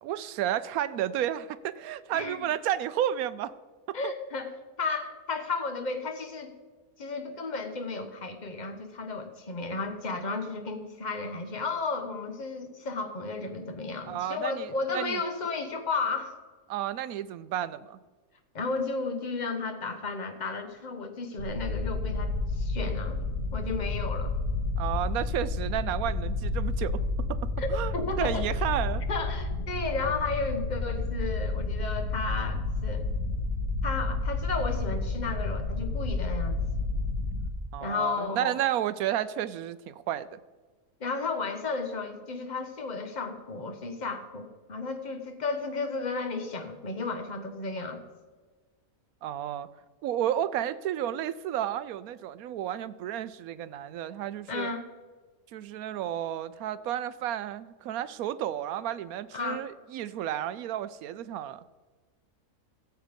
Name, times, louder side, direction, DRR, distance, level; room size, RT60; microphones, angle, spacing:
voice 1, 0.0-3.5 3.9-4.1 14.1-15.2 16.7-18.0 24.8-29.0 37.7-40.4 49.2-49.7 50.0-54.7 55.5-61.6, right 11 dB, 80° right, 15 dB, 1.0 m, -32 dB
voice 2, 2.1-2.5 3.9-4.5 4.8-6.5 7.0-16.4 18.5-23.2 23.5-24.3 27.6-28.4 29.1-33.1 33.8-36.6 37.8-38.6 41.0-48.0 54.5-54.8 59.3-59.6, left 4 dB, 35° left, 6 dB, 1.1 m, -33 dB
sound 1, 21.4-37.5, left 3 dB, 85° left, 2.0 m, -30 dB
14.0 x 7.7 x 5.2 m, 1.4 s
omnidirectional pair, 1.5 m